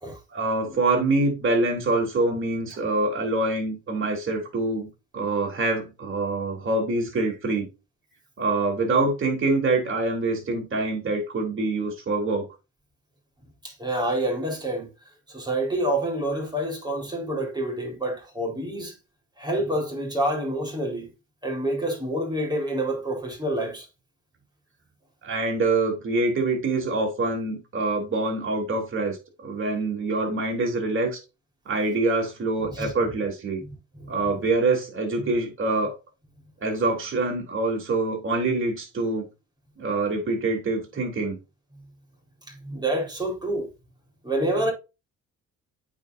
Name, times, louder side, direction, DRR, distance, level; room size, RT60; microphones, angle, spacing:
voice 1, 0.3-4.9 5.1-7.7 8.4-12.5 25.2-29.2 29.4-31.2 31.7-33.6 34.1-35.9 36.6-39.3 39.8-41.4, right 2 dB, 40° right, 3.3 m, -25 dB
voice 2, 13.6-14.9 15.3-19.0 19.4-21.1 21.4-23.9 32.6-32.9 33.6-34.2 35.2-35.3 41.8-41.9 42.5-43.7 44.2-44.7, right 1 dB, 15° right, 4.0 m, -28 dB
8.9 x 4.9 x 2.6 m
cardioid pair, 90°, 30 cm